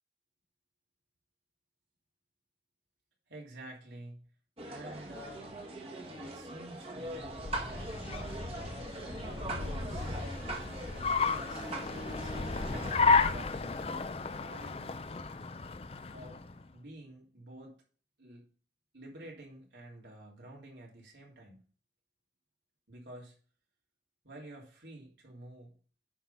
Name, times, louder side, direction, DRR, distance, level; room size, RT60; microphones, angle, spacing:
voice 1, 3.3-4.3 4.6-5.6 6.2-8.9 9.5-10.2 11.2-11.7 12.0-12.4 13.0-14.0 14.4-15.0 16.1-16.4 16.7-17.7 18.2-18.4 18.9-21.6 22.9-23.4 24.2-25.7, right 1 dB, 85° right, -2 dB, 3.1 m, -50 dB
sound 1, 4.6-13.0, right 1 dB, 35° right, 1.4 m, -41 dB
Car, 7.1-16.6, left 4 dB, 35° left, 0.5 m, -33 dB
9.8 x 3.8 x 5.6 m, 0.41 s
head